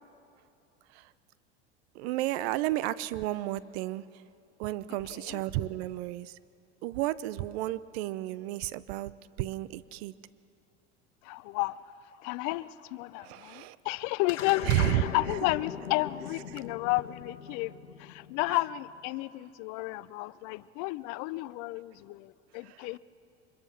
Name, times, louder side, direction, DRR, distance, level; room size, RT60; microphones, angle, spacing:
voice 1, 1.9-4.0 4.6-6.4 6.8-9.1 9.4-10.1 13.2-13.8 14.7-15.1 22.6-22.9, right 15 dB, 65° right, 17 dB, 0.7 m, -32 dB
voice 2, 5.1-5.4 11.2-11.8 12.2-17.7 18.0-23.0, left 20 dB, 55° left, 18 dB, 0.6 m, -32 dB
sound 1, 14.3-18.9, left 8 dB, 85° left, 1.0 m, -40 dB
25.0 x 21.5 x 5.8 m, 2.6 s
hypercardioid pair, 80°, 35 cm